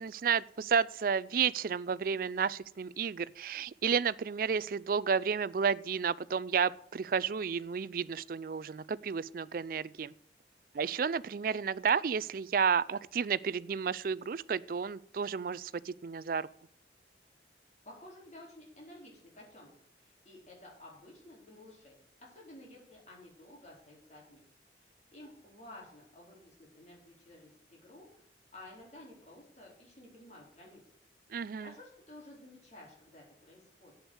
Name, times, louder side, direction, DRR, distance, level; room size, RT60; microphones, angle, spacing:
voice 1, 0.0-10.1 10.7-16.5 31.3-31.7, right 6 dB, 50° right, 19 dB, 0.4 m, -31 dB
voice 2, 17.8-24.4 24.8-30.8 31.5-33.9, left 1 dB, 40° left, -3 dB, 4.3 m, -53 dB
8.0 x 7.9 x 8.1 m, 0.67 s
head